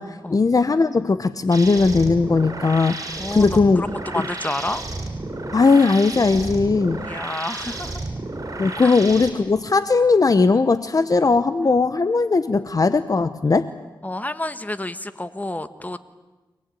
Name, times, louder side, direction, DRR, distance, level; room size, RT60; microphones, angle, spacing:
voice 1, 0.0-3.8 5.5-7.1 8.6-13.7, left 4 dB, 45° left, 12 dB, 0.8 m, -18 dB
sound 1, 1.5-9.3, right 2 dB, 40° right, 6.0 m, -32 dB
voice 2, 3.2-4.8 7.1-8.0 8.8-8.9 14.0-16.0, left 1 dB, 20° left, 11 dB, 1.4 m, -29 dB
25.0 x 19.5 x 9.1 m, 1.2 s
cardioid pair, 60°, 8 cm